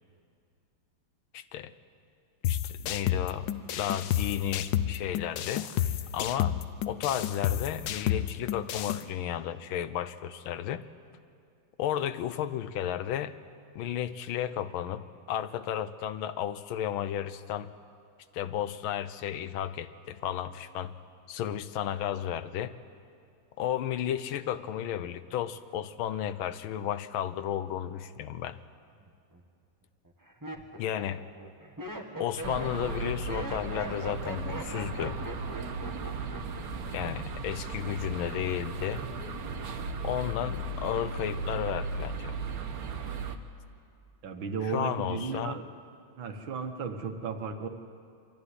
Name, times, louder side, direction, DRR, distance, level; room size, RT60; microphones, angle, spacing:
voice 1, 1.3-1.7 2.5-3.5 3.8-5.7 6.1-6.6 6.9-10.8 11.8-13.3 13.7-17.7 18.3-20.9 21.3-22.7 23.6-28.6 30.8-31.2 32.2-35.2 36.9-39.0 40.0-42.4 44.6-45.6, left 10 dB, 85° left, 13 dB, 1.6 m, -33 dB
sound 1, 2.4-9.0, left 11 dB, 70° left, 1.3 m, -31 dB
Laughter, 29.0-29.4 30.0-36.7 36.9-37.4, right 1 dB, 10° right, 1.3 m, -40 dB
sound 2, 32.4-43.4, right 3 dB, 55° right, 1.4 m, -36 dB
voice 2, 44.2-45.6 46.2-47.7, right 5 dB, 75° right, 6 dB, 2.1 m, -34 dB
24.0 x 14.0 x 9.7 m, 2.3 s
omnidirectional pair, 2.2 m